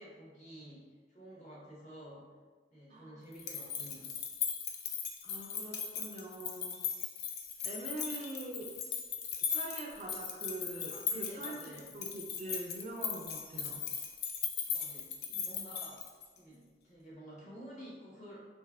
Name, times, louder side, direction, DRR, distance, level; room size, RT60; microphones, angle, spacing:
voice 1, 0.0-2.3 2.7-4.1 10.9-12.0 14.7-16.0 16.4-18.5, equal, 45° left, -7 dB, 1.2 m, -51 dB
sound 1, 3.3-16.4, left 7 dB, 65° left, 0.4 m, -38 dB
voice 2, 5.2-6.9 7.6-8.7 9.5-13.8, right 1 dB, 40° right, 0 dB, 0.4 m, -44 dB
3.2 x 2.6 x 3.5 m, 1.4 s
head